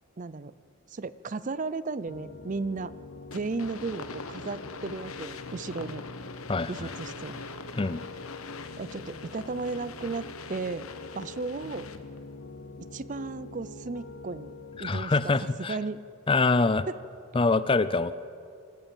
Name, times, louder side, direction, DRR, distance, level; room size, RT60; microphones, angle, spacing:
voice 1, 0.2-0.5 0.9-2.9 3.3-6.0 6.7-7.4 8.8-10.9 11.1-11.9 12.9-14.5 14.8-15.3 15.7-16.0 16.9-17.0, right 3 dB, 35° right, 17 dB, 0.5 m, -34 dB
Piano, 2.1-15.0, left 2 dB, 65° left, 0.9 m, -45 dB
sound 1, 3.3-12.2, left 4 dB, 80° left, 1.2 m, -43 dB
voice 2, 6.5-6.9 7.7-8.0 14.8-15.8 16.3-16.9 17.3-18.1, left 3 dB, 25° left, 15 dB, 0.4 m, -25 dB
25.5 x 14.0 x 7.2 m, 2.5 s
head